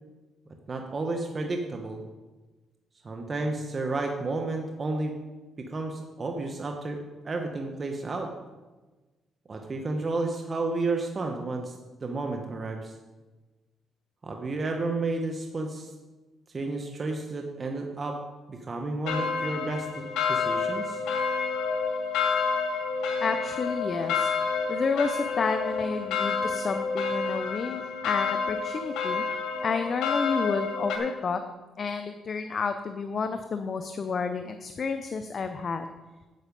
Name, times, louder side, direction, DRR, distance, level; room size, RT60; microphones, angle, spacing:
voice 1, 0.7-2.0 3.0-5.1 5.6-7.0 7.2-8.3 9.5-11.7 12.0-12.9 14.2-15.9 16.5-18.2 18.5-21.0, right 3 dB, 35° right, 3 dB, 1.1 m, -31 dB
sound 1, 19.0-31.0, left 5 dB, 90° left, 2.0 m, -29 dB
voice 2, 23.2-24.3 24.7-29.2 29.6-31.4 31.8-35.9, left 5 dB, 45° left, 8 dB, 0.6 m, -30 dB
9.4 x 8.3 x 5.3 m, 1.2 s
cardioid pair, 90°, 0 cm